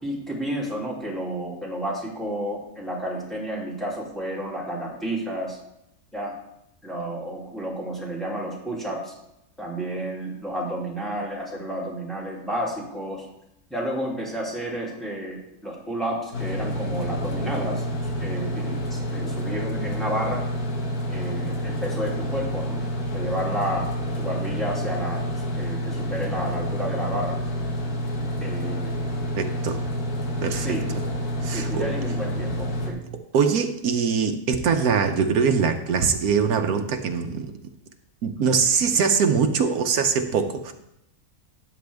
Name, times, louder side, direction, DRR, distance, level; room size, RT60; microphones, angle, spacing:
voice 1, 0.0-5.6 6.1-6.3 6.8-9.1 9.6-13.3 13.7-20.4 21.1-22.8 23.1-23.9 24.2-25.3 25.6-27.4 28.4-29.1 30.6-30.8 31.5-33.0, right 1 dB, ahead, -4 dB, 2.7 m, -31 dB
sound 1, 16.3-32.9, equal, 85° left, 1.9 m, -28 dB
voice 2, 29.4-29.8 30.4-30.7 31.4-31.9 33.3-37.5 38.2-40.7, right 6 dB, 80° right, 7 dB, 1.3 m, -22 dB
13.0 x 9.1 x 3.5 m, 0.82 s
omnidirectional pair, 1.5 m